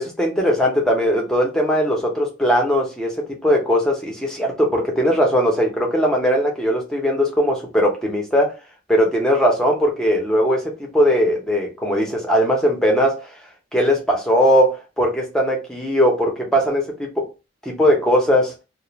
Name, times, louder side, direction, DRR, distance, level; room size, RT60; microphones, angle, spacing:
voice 1, 0.0-8.5 8.9-13.3 13.7-17.3 17.6-18.5, equal, 5° left, 0.7 m, -19 dB
2.4 x 2.1 x 3.0 m
head